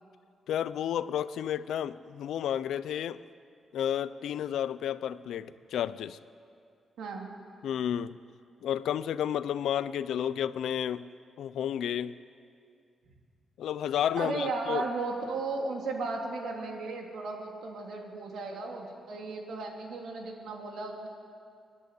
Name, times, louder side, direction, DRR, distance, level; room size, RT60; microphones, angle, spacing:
voice 1, 0.5-3.2 3.7-6.2 7.6-8.2 8.6-11.1 11.4-12.1 13.6-14.9, left 10 dB, 85° left, 15 dB, 0.6 m, -31 dB
voice 2, 7.0-7.3 14.2-21.1, right 3 dB, 70° right, 1 dB, 3.2 m, -35 dB
29.0 x 11.0 x 8.3 m, 2.3 s
wide cardioid pair, 180°, 0 cm